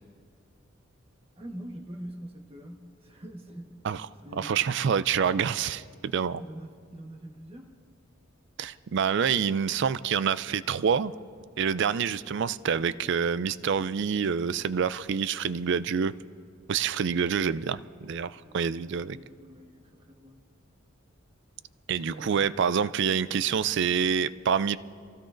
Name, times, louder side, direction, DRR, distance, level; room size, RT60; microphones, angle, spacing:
voice 1, 1.4-3.8 4.2-4.7 6.4-7.8 18.4-20.4 22.1-22.6, right 1 dB, 30° right, 2 dB, 1.3 m, -44 dB
voice 2, 4.4-6.4 8.6-11.1 11.6-16.1 16.7-19.2 21.9-24.8, right 7 dB, 60° right, 16 dB, 0.4 m, -27 dB
28.0 x 16.0 x 2.5 m, 2.3 s
head